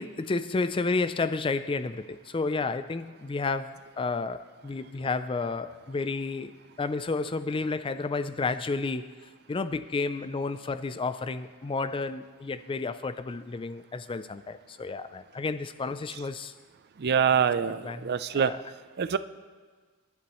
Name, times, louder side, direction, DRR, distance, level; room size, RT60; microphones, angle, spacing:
voice 1, 0.0-6.5 6.8-9.1 9.5-16.5 17.8-18.6, left 3 dB, 25° left, 0.4 m, -31 dB
voice 2, 17.0-18.5 19.0-19.2, right 7 dB, 45° right, 0.4 m, -25 dB
25.5 x 11.5 x 3.1 m
head